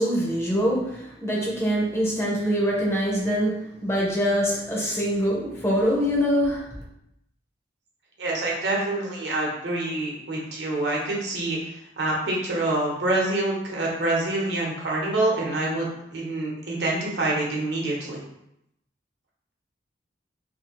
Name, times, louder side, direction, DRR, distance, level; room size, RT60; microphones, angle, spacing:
voice 1, 0.0-6.8, equal, 15° left, -4 dB, 0.7 m, -24 dB
voice 2, 8.2-11.6 12.0-18.2, right 2 dB, 70° right, -3 dB, 0.9 m, -26 dB
2.9 x 2.8 x 2.9 m, 0.80 s
head